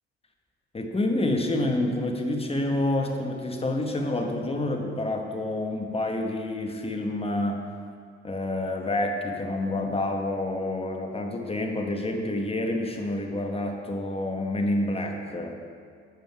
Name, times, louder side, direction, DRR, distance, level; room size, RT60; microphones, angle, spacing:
voice 1, 0.7-7.6 8.2-15.6, left 1 dB, 20° left, 2 dB, 1.1 m, -28 dB
7.6 x 5.2 x 4.5 m, 2.2 s
hypercardioid pair, 50°, 29 cm